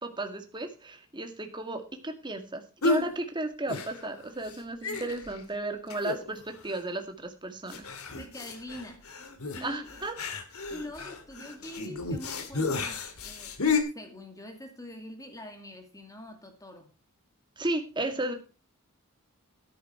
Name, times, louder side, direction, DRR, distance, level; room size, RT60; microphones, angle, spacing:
voice 1, 0.0-7.9 9.6-10.1 17.6-18.3, right 2 dB, 20° right, 5 dB, 2.0 m, -34 dB
sound 1, 2.8-3.1 3.7-4.2 4.5-4.6 4.8-5.4 5.9-6.4 6.7-6.8 7.7-13.8, left 4 dB, 90° left, 2.3 m, -32 dB
voice 2, 8.1-9.2 9.5-10.1 10.7-13.6 13.9-16.9, left 1 dB, 15° left, 5 dB, 2.4 m, -44 dB
13.0 x 11.0 x 4.4 m, 0.32 s
head